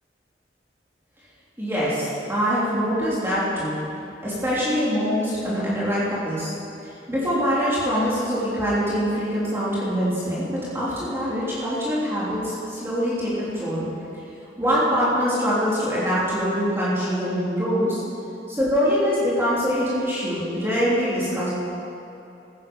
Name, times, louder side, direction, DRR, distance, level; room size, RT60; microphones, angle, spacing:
voice 1, 1.6-3.8 4.2-6.5 6.8-13.9 14.6-18.0 18.5-21.5, equal, 15° right, -9 dB, 3.4 m, -24 dB
15.5 x 11.0 x 5.5 m, 2.8 s
head